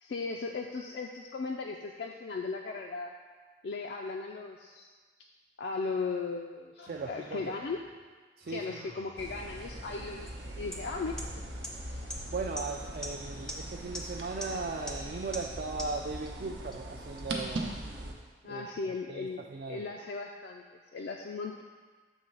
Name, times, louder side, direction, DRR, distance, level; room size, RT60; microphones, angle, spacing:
voice 1, 0.0-3.1 3.6-4.9 5.6-7.8 8.5-10.3 10.6-11.2 11.8-12.0 18.4-21.6, left 4 dB, 70° left, 1 dB, 0.4 m, -37 dB
sound 1, 6.8-8.1 8.4-10.1 10.5-15.7, left 1 dB, 90° left, 1.1 m, -54 dB
voice 2, 6.9-7.5 8.4-8.8 12.3-17.8 18.4-19.8, right 4 dB, 55° right, 2 dB, 0.3 m, -38 dB
sound 2, 9.2-18.1, right 1 dB, 90° right, 0.8 m, -41 dB
sound 3, 10.3-10.4 10.7-10.8 11.2-11.3 11.6-11.7 12.1-12.2 12.6-12.7 13.0-13.1 13.5-13.6 13.9-14.0 14.4-14.5 14.9-15.0 15.3-15.4 15.8-15.9 16.3-16.4 16.7-16.8 17.2-17.3, left 1 dB, 5° left, 0.5 m, -38 dB
7.1 x 3.2 x 5.3 m, 1.5 s
head